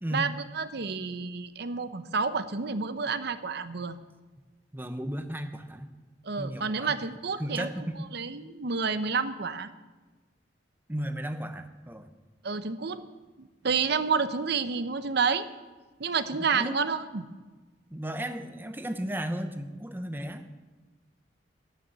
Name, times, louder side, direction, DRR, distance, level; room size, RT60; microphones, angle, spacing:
voice 1, 0.1-3.9 6.2-7.7 8.1-9.7 12.4-13.0 13.6-15.5 16.0-17.3, right 5 dB, 65° right, 12 dB, 0.8 m, -29 dB
voice 2, 4.7-5.9 6.4-7.0 7.4-8.1 10.9-12.1 16.5-16.7 17.9-20.4, equal, 10° right, 8 dB, 0.9 m, -34 dB
13.0 x 6.9 x 9.2 m, 1.2 s
head